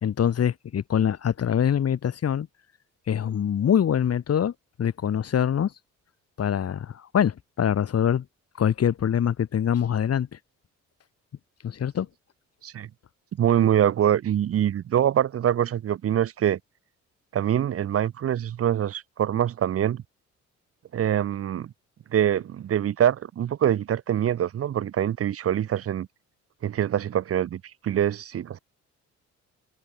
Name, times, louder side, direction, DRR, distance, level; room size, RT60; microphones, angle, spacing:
voice 1, 0.0-2.5 3.1-4.5 4.8-5.7 6.4-8.2 8.6-10.4 11.6-12.1, left 9 dB, 55° left, 2.6 m, -24 dB
voice 2, 13.4-16.6 17.3-20.0 20.9-21.7 22.1-26.1 26.6-28.6, right 10 dB, 50° right, 0.8 m, -24 dB
cardioid pair, 90°, 30 cm